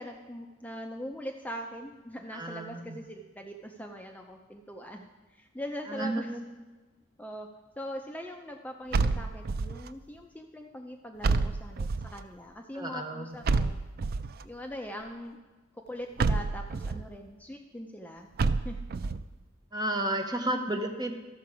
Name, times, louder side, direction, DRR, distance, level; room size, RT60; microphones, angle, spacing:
voice 1, 0.0-6.3 7.2-7.5 7.8-13.8 14.4-15.4 15.9-18.3 18.6-18.8, equal, 10° left, 2 dB, 0.6 m, -41 dB
voice 2, 2.3-3.0 5.9-6.5 12.7-13.4 19.7-21.1, right 1 dB, 20° right, 4 dB, 0.9 m, -32 dB
sound 1, 8.9-9.9 11.2-12.2 13.5-14.4 16.2-17.1 18.4-19.2, right 3 dB, 50° right, 0.4 m, -28 dB
13.5 x 6.9 x 4.8 m, 1.2 s
head